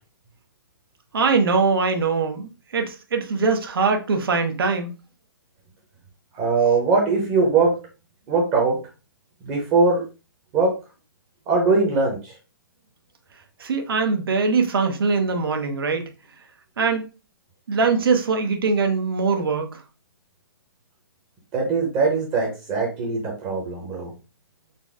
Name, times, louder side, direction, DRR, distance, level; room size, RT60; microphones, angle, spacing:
voice 1, 1.1-4.9 13.6-16.1 16.8-17.1 17.7-19.8, right 4 dB, 70° right, 0.9 m, -22 dB
voice 2, 6.3-7.8 8.3-8.8 9.4-10.0 10.5-10.7 11.5-12.3 21.5-24.1, right 4 dB, 20° right, 0.8 m, -21 dB
4.0 x 2.1 x 3.6 m
hypercardioid pair, 165°, 12 cm